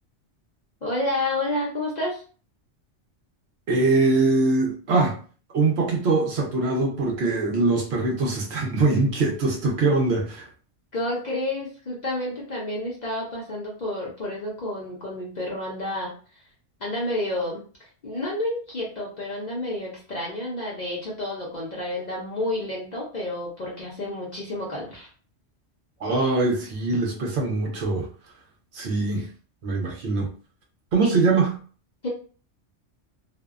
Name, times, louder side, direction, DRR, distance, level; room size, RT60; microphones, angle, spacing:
voice 1, 0.8-2.2 10.9-16.1 16.8-25.1 31.0-31.1 32.0-32.1, left 1 dB, 45° left, 0.6 m, -30 dB
voice 2, 3.7-5.2 5.5-10.5 26.0-28.1 28.7-29.3 29.6-30.3 30.9-31.5, right 3 dB, 65° right, 0.9 m, -22 dB
2.6 x 2.1 x 2.3 m
omnidirectional pair, 1.2 m